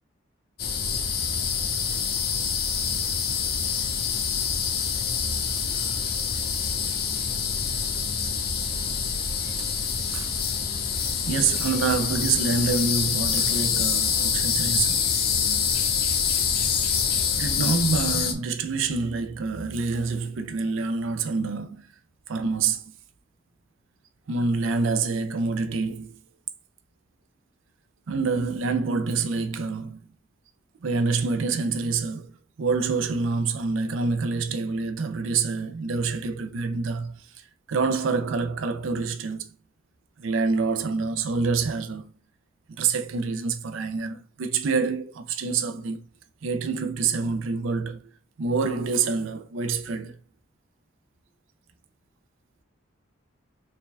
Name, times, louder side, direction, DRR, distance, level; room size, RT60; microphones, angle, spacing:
sound 1, 0.6-18.3, left 6 dB, 50° left, 0.6 m, -26 dB
voice 1, 10.1-10.4 11.3-15.0 17.3-21.9 22.3-22.9 24.3-26.2 28.1-30.0 30.8-39.5 40.2-42.1 42.7-46.0 46.4-48.1 48.4-50.2, right 4 dB, 90° right, 0.4 m, -27 dB
4.7 x 3.4 x 2.2 m
head